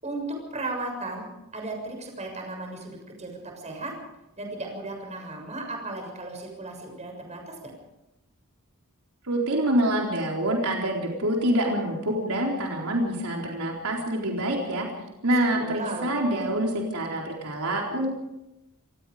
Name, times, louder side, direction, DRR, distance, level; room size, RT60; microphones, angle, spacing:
voice 1, 0.0-3.9 4.4-7.7 15.2-16.1, right 2 dB, 30° right, 2 dB, 7.0 m, -36 dB
voice 2, 9.2-14.9 15.2-18.1, right 1 dB, 80° right, -1 dB, 4.1 m, -26 dB
28.0 x 18.5 x 5.1 m, 0.90 s
head